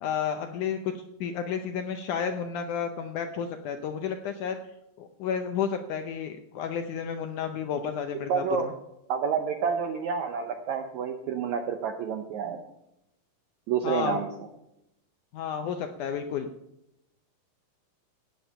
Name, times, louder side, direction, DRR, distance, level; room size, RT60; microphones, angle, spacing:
voice 1, 0.0-4.6 5.0-8.7 13.8-14.2 15.3-16.5, left 7 dB, 80° left, 7 dB, 1.8 m, -31 dB
voice 2, 8.3-8.7 9.1-12.6 13.7-14.3, right 7 dB, 80° right, 6 dB, 1.7 m, -29 dB
17.0 x 7.9 x 5.6 m, 0.86 s
omnidirectional pair, 4.3 m